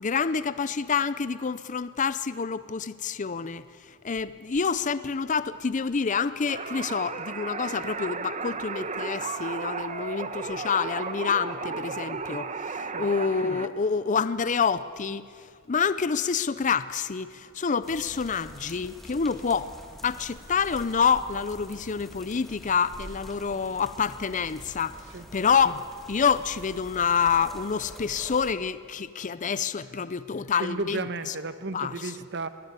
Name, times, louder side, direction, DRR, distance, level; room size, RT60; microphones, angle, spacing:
voice 1, 0.0-19.7 20.0-25.0 25.3-31.3 31.7-32.1, left 6 dB, 35° left, 0.5 m, -27 dB
sound 1, 6.5-13.7, right 4 dB, 35° right, 1.0 m, -34 dB
sound 2, 17.8-28.5, equal, ahead, 2.1 m, -46 dB
voice 2, 30.6-32.5, right 3 dB, 55° right, 1.1 m, -33 dB
22.0 x 18.5 x 9.6 m
head